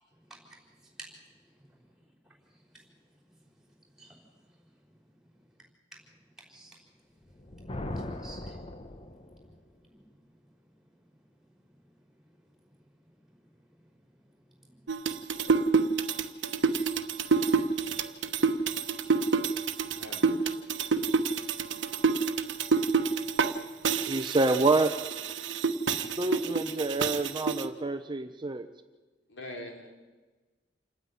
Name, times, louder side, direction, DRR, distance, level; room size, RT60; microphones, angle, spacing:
voice 1, 0.2-20.0 21.6-24.3, right 1 dB, 5° right, 0 dB, 4.7 m, -59 dB
Thunder, 7.2-9.6, left 1 dB, 30° left, 1.0 m, -39 dB
sound 1, 14.9-23.5 23.8-27.6, right 4 dB, 85° right, 1.1 m, -28 dB
voice 2, 19.9-20.7 29.3-29.9, left 1 dB, 75° left, 2 dB, 3.4 m, -44 dB
voice 3, 24.1-25.0 26.2-28.7, right 2 dB, 25° right, 8 dB, 0.7 m, -27 dB
28.0 x 9.7 x 9.7 m, 1.2 s
head